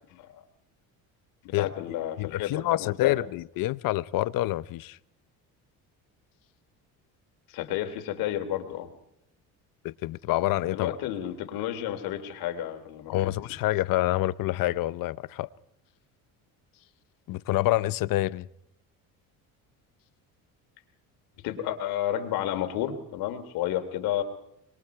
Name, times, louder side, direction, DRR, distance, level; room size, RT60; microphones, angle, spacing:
voice 1, 1.4-2.5 2.8-3.2 7.5-8.9 10.7-13.3 21.4-24.2, left 11 dB, 80° left, 3.0 m, -31 dB
voice 2, 2.2-5.0 9.8-11.0 13.1-15.5 17.3-18.5, left 16 dB, 65° left, 0.8 m, -27 dB
26.5 x 22.0 x 4.7 m
cardioid pair, 110°, 36 cm